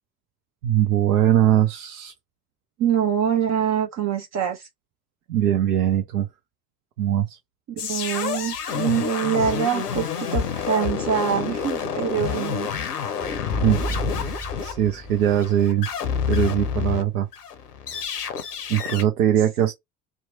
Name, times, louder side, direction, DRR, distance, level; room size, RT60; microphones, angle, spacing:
voice 1, 0.6-2.1 5.3-6.3 7.0-7.4 13.6-13.8 14.2-15.9 16.3-17.3 18.7-19.7, right 11 dB, 80° right, 0.5 m, -21 dB
voice 2, 2.8-4.7 7.7-12.7 19.6-19.7, right 8 dB, 40° right, 0.6 m, -24 dB
sound 1, 7.8-17.0 17.3-19.0, left 7 dB, 90° left, 0.5 m, -28 dB
sound 2, 13.2-15.5, right 1 dB, ahead, 1.5 m, -33 dB
2.8 x 2.1 x 2.6 m
figure-of-eight pair, 55°, 45 cm